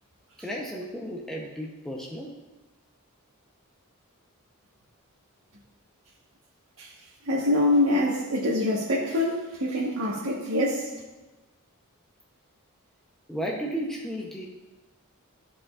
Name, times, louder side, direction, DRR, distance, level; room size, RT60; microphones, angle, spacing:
voice 1, 0.4-2.3 13.3-14.5, equal, ahead, -2 dB, 0.6 m, -33 dB
voice 2, 7.2-11.0, left 1 dB, 75° right, -5 dB, 1.1 m, -25 dB
13.5 x 4.9 x 2.3 m, 1.2 s
head